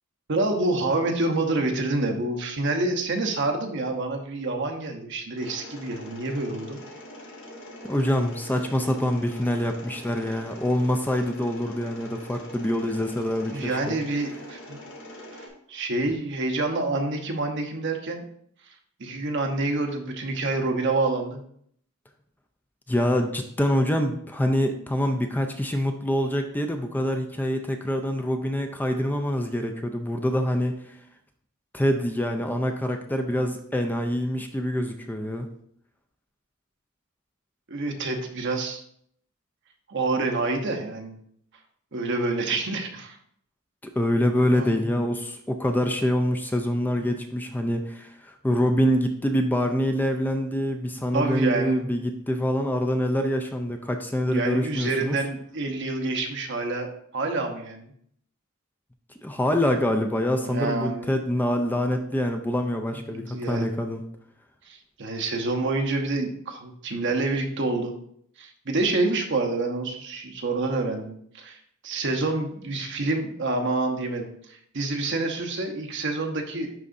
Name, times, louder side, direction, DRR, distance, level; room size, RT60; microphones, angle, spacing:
voice 1, 0.3-6.8 13.5-14.8 15.3-18.2 19.0-21.4 37.7-38.8 39.9-41.2 41.9-43.2 44.5-44.9 47.0-47.1 51.1-51.9 54.3-57.9 60.1-61.1 63.1-63.7 64.7-67.9 68.4-71.6 71.8-76.7, right 2 dB, 60° right, 3 dB, 0.9 m, -27 dB
Mechanisms, 5.4-15.5, left 1 dB, 65° left, 1.2 m, -43 dB
voice 2, 7.8-14.0 22.9-30.8 31.7-35.5 43.8-55.2 59.2-64.0, equal, 10° left, 5 dB, 0.4 m, -25 dB
10.5 x 3.8 x 2.6 m, 0.68 s
head